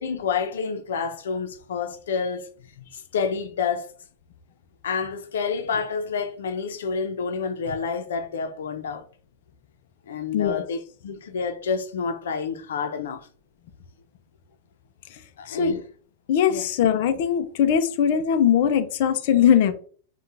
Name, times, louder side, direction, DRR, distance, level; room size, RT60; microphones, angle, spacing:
voice 1, 0.0-2.5 2.8-3.9 4.8-9.0 10.1-13.3 15.4-15.8 16.5-16.7, left 5 dB, 90° left, 0.9 m, -28 dB
voice 2, 15.5-15.8 16.3-19.7, left 9 dB, 60° left, 0.7 m, -20 dB
5.7 x 2.5 x 3.3 m
supercardioid pair, 145°, 0 cm